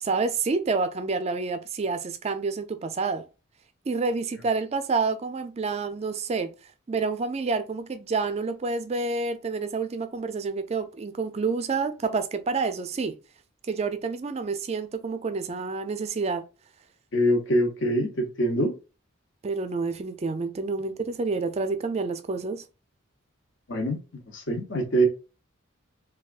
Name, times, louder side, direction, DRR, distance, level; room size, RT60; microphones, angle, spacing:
voice 1, 0.0-3.2 3.9-6.5 6.9-13.1 13.7-16.4 19.4-22.6, right 4 dB, 30° right, 0.4 m, -28 dB
voice 2, 17.1-18.7 23.7-24.0 24.3-25.1, right 1 dB, 60° left, 0.8 m, -24 dB
3.4 x 2.3 x 2.4 m
head